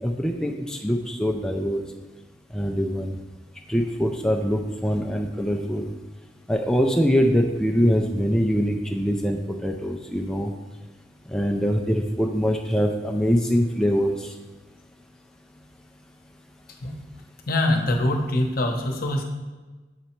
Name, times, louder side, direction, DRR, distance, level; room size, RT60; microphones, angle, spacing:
voice 1, 0.0-1.8 2.5-3.1 3.7-5.9 6.5-10.5 11.3-14.3, equal, 5° left, 2 dB, 0.4 m, -23 dB
voice 2, 17.5-19.2, left 1 dB, 55° left, 3 dB, 0.9 m, -23 dB
6.6 x 4.1 x 4.4 m, 1.2 s
head